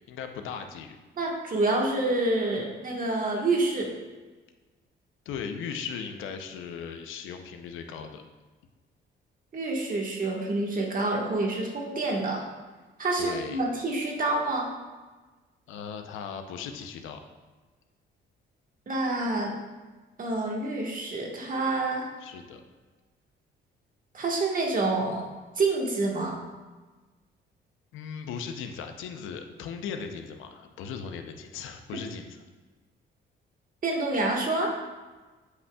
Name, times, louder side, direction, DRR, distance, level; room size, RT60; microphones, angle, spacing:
voice 1, 0.1-1.0 5.3-8.2 13.2-13.6 15.7-17.2 22.2-22.6 27.9-32.4, left 6 dB, 85° left, 6 dB, 0.6 m, -38 dB
voice 2, 1.2-3.9 9.5-12.4 13.0-14.7 18.9-19.5 20.2-22.1 24.1-25.3 25.6-26.4 33.8-34.7, right 2 dB, 45° right, 0 dB, 1.4 m, -27 dB
8.1 x 5.5 x 2.3 m, 1.3 s
cardioid pair, 90°, 20 cm